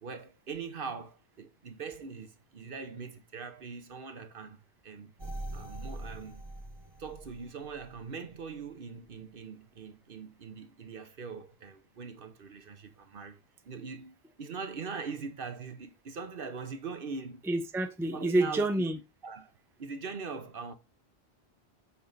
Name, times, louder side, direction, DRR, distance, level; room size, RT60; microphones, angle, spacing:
voice 1, 0.0-5.1 5.5-6.5 7.0-13.4 13.6-17.4 18.1-19.5 19.8-20.7, right 5 dB, 60° right, 1.0 m, -42 dB
sound 1, 5.2-8.0 8.5-8.6, right 1 dB, 25° right, 1.1 m, -43 dB
voice 2, 17.5-19.0, right 1 dB, 5° right, 0.6 m, -28 dB
7.1 x 4.6 x 3.9 m
omnidirectional pair, 1.1 m